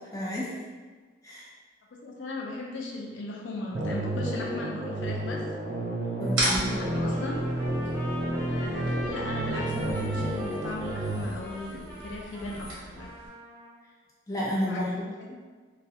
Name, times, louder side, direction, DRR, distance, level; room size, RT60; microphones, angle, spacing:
voice 1, 0.1-0.5 1.2-1.5 6.2-6.9 14.3-15.4, left 1 dB, 15° left, -7 dB, 0.4 m, -32 dB
voice 2, 2.0-5.4 6.4-7.4 8.5-13.1 14.7-14.8 15.2-15.4, left 2 dB, 75° left, -2 dB, 0.4 m, -37 dB
sound 1, 3.7-11.3, right 1 dB, 50° right, 0.3 m, -31 dB
sound 2, 6.3-13.3, right 1 dB, 90° right, 0.8 m, -36 dB
Trumpet, 6.7-13.7, equal, 20° right, 0.7 m, -42 dB
2.3 x 2.1 x 2.7 m, 1.5 s
head